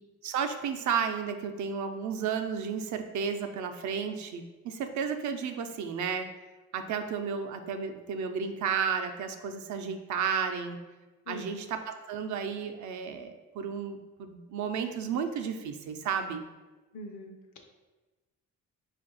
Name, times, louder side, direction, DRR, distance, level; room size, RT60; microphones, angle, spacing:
voice 1, 0.2-6.3 6.7-10.8 11.3-16.4, right 6 dB, 75° right, 6 dB, 0.5 m, -33 dB
voice 2, 16.9-17.6, left 1 dB, 75° left, 3 dB, 0.8 m, -43 dB
4.7 x 2.5 x 3.8 m, 1.2 s
cardioid pair, 90°, 30 cm